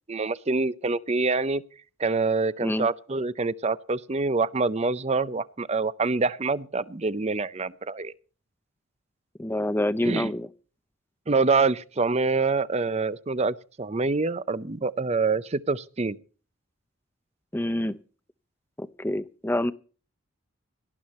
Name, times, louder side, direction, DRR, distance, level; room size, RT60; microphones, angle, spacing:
voice 1, 0.1-1.6 2.0-8.1 10.0-10.3 11.3-16.2, right 3 dB, 30° right, 16 dB, 0.6 m, -26 dB
voice 2, 9.4-10.5 17.5-18.0 18.8-19.7, left 1 dB, 10° left, 14 dB, 0.6 m, -27 dB
18.5 x 12.0 x 4.3 m, 0.39 s
head